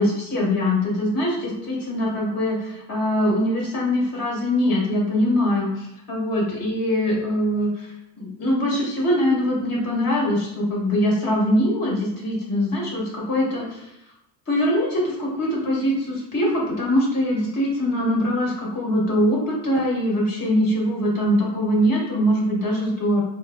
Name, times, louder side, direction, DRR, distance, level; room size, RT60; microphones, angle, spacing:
voice 1, 0.0-13.9 14.5-23.2, equal, 35° left, -3 dB, 1.4 m, -22 dB
4.9 x 2.0 x 3.4 m, 0.86 s
cardioid pair, 160°, 46 cm